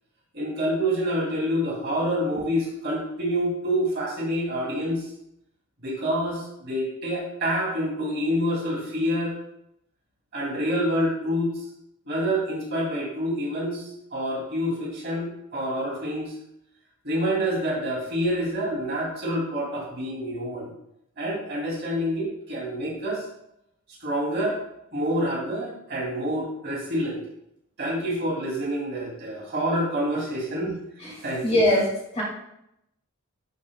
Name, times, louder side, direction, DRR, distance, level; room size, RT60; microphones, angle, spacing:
voice 1, 0.3-5.1 5.8-9.3 10.3-11.6 12.1-16.3 17.0-20.7 21.2-23.2 24.0-24.6 24.9-27.2 27.8-30.7 31.2-31.6, equal, 50° right, -4 dB, 2.8 m, -27 dB
voice 2, 31.0-31.9 32.1-32.2, left 1 dB, 30° left, -5 dB, 2.4 m, -23 dB
11.0 x 5.6 x 2.3 m, 0.80 s
head